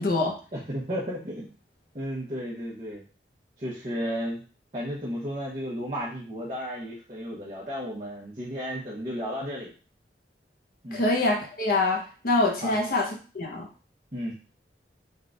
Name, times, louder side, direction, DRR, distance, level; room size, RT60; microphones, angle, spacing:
voice 1, 0.0-0.4 10.9-13.7, left 2 dB, 55° left, 0 dB, 0.7 m, -25 dB
voice 2, 0.5-1.5 1.9-3.0 3.6-4.4 4.7-9.7 10.8-11.0 12.6-12.8 14.1-14.3, equal, 35° right, -9 dB, 1.0 m, -33 dB
3.7 x 2.4 x 3.8 m, 0.36 s
head